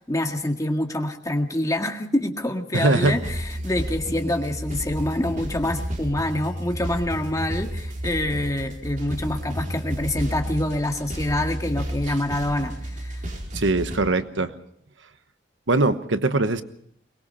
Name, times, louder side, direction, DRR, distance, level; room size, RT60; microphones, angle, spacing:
voice 1, 0.0-13.2, left 1 dB, 20° left, 4 dB, 1.9 m, -26 dB
voice 2, 2.7-3.2 12.1-12.2 13.5-14.5 15.7-16.6, right 2 dB, 75° right, 11 dB, 1.2 m, -21 dB
sound 1, 3.0-14.0, equal, 45° right, 4.7 m, -31 dB
23.0 x 20.5 x 5.6 m, 0.67 s
head